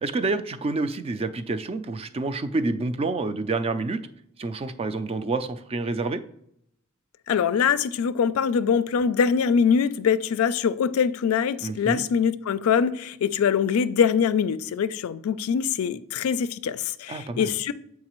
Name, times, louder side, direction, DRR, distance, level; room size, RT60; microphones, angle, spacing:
voice 1, 0.0-4.0 4.4-6.2 11.6-12.0 17.1-17.5, right 3 dB, 30° right, 0.3 m, -28 dB
voice 2, 7.3-17.7, left 7 dB, 80° left, 0.3 m, -23 dB
7.3 x 4.7 x 3.0 m
head